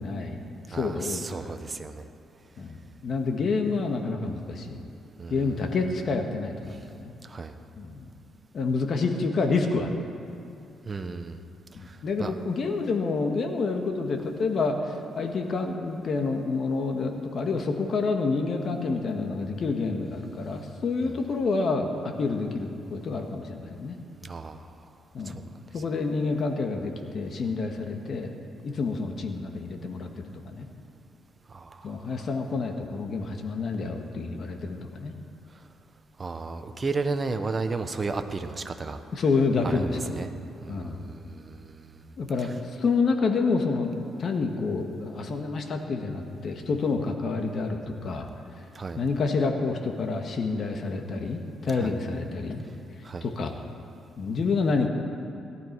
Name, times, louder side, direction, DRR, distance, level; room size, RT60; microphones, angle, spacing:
voice 1, 0.0-1.6 2.6-4.9 5.3-7.1 7.7-8.1 8.5-10.0 12.0-24.0 25.1-25.5 25.7-28.4 28.6-30.7 31.8-35.1 39.1-40.0 40.7-41.1 42.2-43.9 44.2-48.3 48.9-52.6 53.2-53.5 54.2-54.9, left 4 dB, 50° left, 4 dB, 1.6 m, -28 dB
voice 2, 0.7-2.1 5.2-5.5 6.7-6.8 7.2-7.5 10.9-11.4 11.7-12.3 21.0-21.2 24.2-24.7 25.2-25.6 31.5-32.2 35.5-35.6 36.2-39.0 39.6-40.3 40.6-42.1 42.4-42.5 48.7-49.0 51.8-51.9 53.0-53.3, right 4 dB, 30° right, 8 dB, 1.0 m, -34 dB
18.0 x 12.0 x 4.7 m, 2.7 s
cardioid pair, 90°, 0 cm